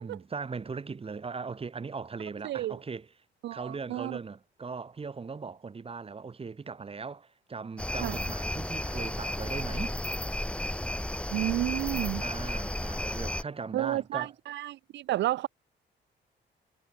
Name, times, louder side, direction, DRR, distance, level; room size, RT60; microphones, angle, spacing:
voice 1, 0.0-3.1 3.5-10.0 12.2-14.3, right 5 dB, 30° right, 2.8 m, -39 dB
voice 2, 3.4-4.2 8.0-8.2 11.3-12.2 13.7-15.5, right 14 dB, 70° right, 0.4 m, -31 dB
sound 1, 7.8-13.4, left 1 dB, 5° left, 3.2 m, -33 dB
cardioid pair, 115°, 20 cm